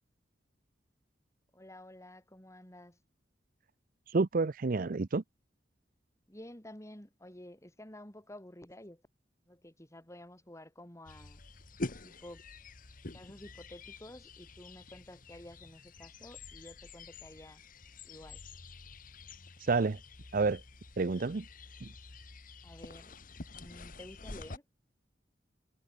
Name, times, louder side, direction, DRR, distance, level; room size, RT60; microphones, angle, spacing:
voice 1, 1.5-3.0 6.3-9.0 9.5-11.4 12.0-12.4 13.1-17.6 18.0-18.4 22.6-23.1 23.6-24.6, left 1 dB, 15° left, 4.1 m, -51 dB
voice 2, 4.1-5.2 19.7-20.0 20.3-20.6 21.0-21.4 21.8-21.9, right 3 dB, 50° right, 0.6 m, -29 dB
sound 1, 11.1-24.6, left 2 dB, 50° left, 1.5 m, -47 dB
head